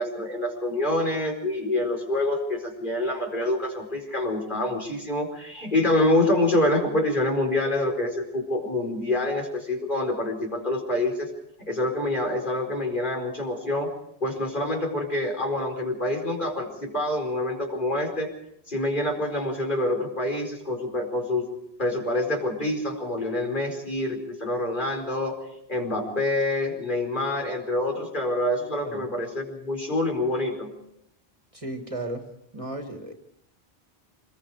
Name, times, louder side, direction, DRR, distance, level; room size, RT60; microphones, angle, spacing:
voice 1, 0.0-11.3 11.6-13.9 14.2-18.3 18.7-21.5 21.8-25.4 25.7-30.7, left 1 dB, 50° left, 2 dB, 4.9 m, -26 dB
voice 2, 31.5-32.3 32.5-33.1, right 1 dB, 35° right, 4 dB, 2.1 m, -34 dB
26.5 x 21.5 x 4.9 m, 0.76 s
omnidirectional pair, 1.0 m